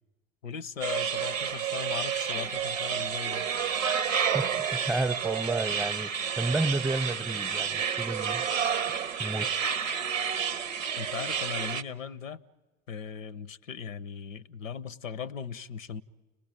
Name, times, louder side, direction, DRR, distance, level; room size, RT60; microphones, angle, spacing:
voice 1, 0.4-3.5 11.0-12.4 12.9-16.0, left 7 dB, 80° left, 0.7 m, -38 dB
sound 1, 0.8-11.8, right 7 dB, 85° right, 0.8 m, -30 dB
voice 2, 4.3-8.4 9.2-9.5, right 2 dB, 5° right, 0.8 m, -31 dB
30.0 x 19.5 x 8.9 m
figure-of-eight pair, 75°, 39 cm